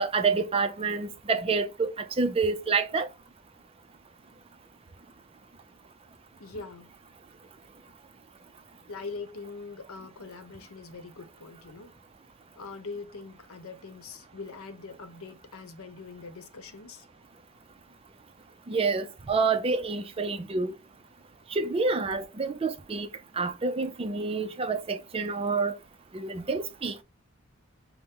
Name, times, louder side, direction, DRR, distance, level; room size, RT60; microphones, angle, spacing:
voice 1, 0.0-3.1 18.7-20.8 21.5-23.1 23.4-25.7 26.1-27.0, right 4 dB, 25° right, 0.4 m, -28 dB
voice 2, 6.4-6.9 8.9-12.0 12.6-17.1, left 4 dB, 75° left, 0.8 m, -42 dB
5.7 x 2.1 x 3.5 m
head